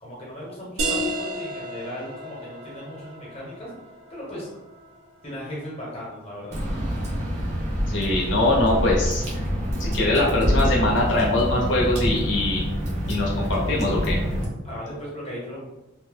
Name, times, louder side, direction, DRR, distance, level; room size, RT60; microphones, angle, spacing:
voice 1, 0.0-3.7 4.1-4.5 5.2-6.6 14.6-15.6, left 1 dB, 30° left, -6 dB, 1.1 m, -37 dB
sound 1, 0.8-6.1, right 1 dB, 90° right, 0.7 m, -33 dB
Water / Drip, 6.5-14.4, equal, 35° right, 0.8 m, -26 dB
voice 2, 7.9-9.2 9.8-12.6 13.1-14.2, left 2 dB, 60° left, -4 dB, 0.9 m, -22 dB
2.8 x 2.2 x 3.5 m, 0.99 s
head